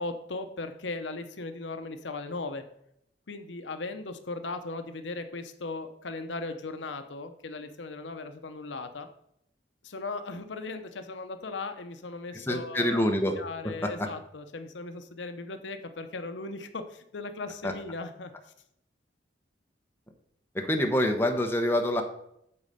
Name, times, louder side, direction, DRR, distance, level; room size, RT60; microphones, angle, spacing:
voice 1, 0.0-2.6 3.3-9.1 9.8-13.0 13.3-18.3, left 3 dB, 70° left, 8 dB, 0.8 m, -37 dB
voice 2, 12.3-13.4 13.8-14.1 17.6-17.7 20.5-22.0, left 1 dB, 10° left, 3 dB, 0.9 m, -26 dB
8.6 x 4.1 x 6.6 m, 0.75 s
head